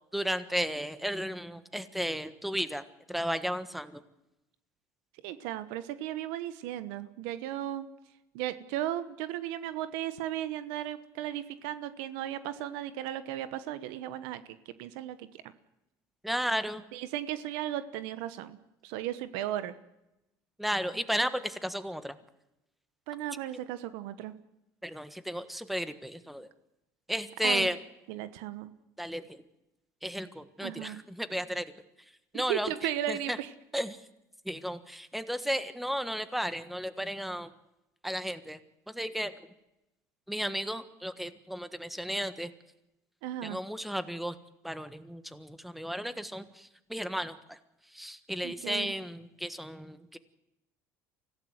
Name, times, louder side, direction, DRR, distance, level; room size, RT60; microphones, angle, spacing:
voice 1, 0.1-2.8 3.1-4.0 16.2-16.8 20.6-22.1 24.8-26.5 27.1-27.8 29.0-29.4 30.0-31.7 32.3-32.7 33.1-33.4 33.7-34.0 34.4-37.5 38.0-38.6 38.9-39.3 40.3-42.5 43.4-44.3 44.6-47.6 47.9-50.2, equal, ahead, 11 dB, 1.4 m, -34 dB
voice 2, 5.2-7.9 8.3-15.5 16.9-18.6 18.8-19.7 23.1-24.3 27.4-27.7 28.1-28.7 30.6-31.0 32.3-33.5 43.2-43.6 48.4-48.9, right 12 dB, 85° right, 13 dB, 1.1 m, -36 dB
25.0 x 16.0 x 8.0 m, 0.93 s
cardioid pair, 120°, 7 cm